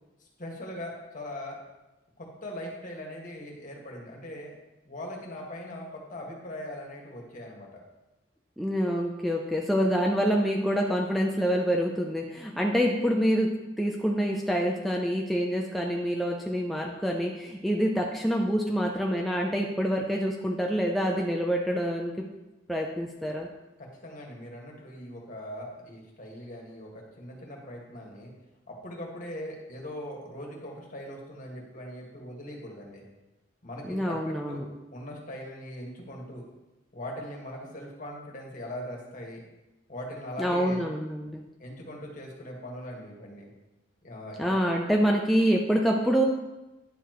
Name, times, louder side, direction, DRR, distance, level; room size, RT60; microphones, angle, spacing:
voice 1, 0.4-1.6 2.2-4.5 4.8-7.8 23.8-28.3 28.7-33.0 33.6-34.6 34.9-36.4 36.9-39.4 39.9-40.8 41.6-43.5 44.0-44.6, left 1 dB, 45° left, -1 dB, 1.7 m, -40 dB
voice 2, 8.6-22.3 22.7-23.5 33.9-34.6 40.4-41.4 44.4-46.3, equal, ahead, -1 dB, 0.5 m, -26 dB
10.0 x 6.9 x 3.0 m, 1.0 s
head